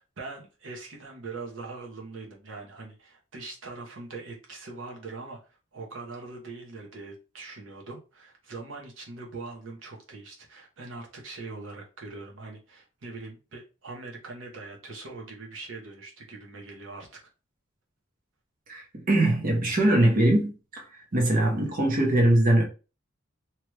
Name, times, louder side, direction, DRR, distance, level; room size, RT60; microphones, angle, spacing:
voice 1, 0.2-17.2, right 3 dB, 80° right, 0.9 m, -42 dB
voice 2, 18.7-22.6, right 1 dB, 45° right, 0.8 m, -22 dB
2.9 x 2.4 x 3.2 m
head